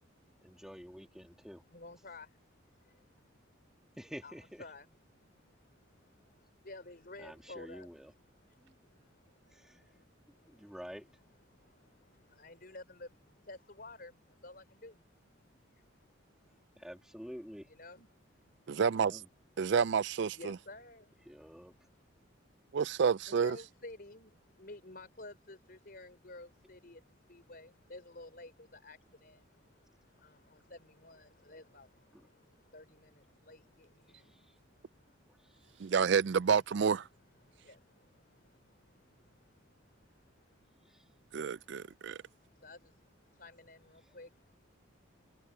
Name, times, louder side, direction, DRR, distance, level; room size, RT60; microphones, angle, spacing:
voice 1, 0.4-1.6 4.0-4.7 7.2-8.1 8.6-8.8 9.5-9.9 10.5-11.1 16.8-17.7 19.0-19.3 21.3-21.9 32.1-32.2 34.1-34.6 35.3-35.9 40.8-41.1 44.0-44.1, equal, 5° right, 2.2 m, -49 dB
voice 2, 1.7-2.5 2.8-3.2 4.2-4.3 4.6-4.9 5.1-7.9 8.5-10.1 10.3-10.7 11.5-15.0 15.7-16.1 16.5-16.6 17.8-18.1 18.5-18.6 20.3-21.3 23.3-35.2 35.5-35.6 36.5-36.6 37.4-40.5 41.7-44.5, left 2 dB, 45° left, 4.6 m, -53 dB
voice 3, 18.7-19.2 19.6-20.6 22.7-23.6 35.8-37.0 41.3-42.2, right 6 dB, 55° right, 0.4 m, -29 dB
head